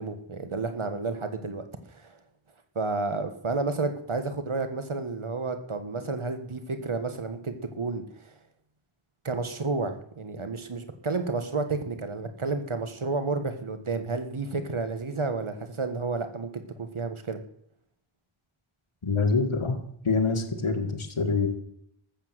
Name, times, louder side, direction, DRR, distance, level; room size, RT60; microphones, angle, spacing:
voice 1, 0.0-2.2 2.8-8.3 9.2-17.4, right 3 dB, 80° right, 8 dB, 1.6 m, -31 dB
voice 2, 19.0-19.8 20.0-21.5, left 4 dB, 80° left, 4 dB, 2.0 m, -25 dB
13.5 x 7.2 x 8.0 m, 0.72 s
wide cardioid pair, 40°, 49 cm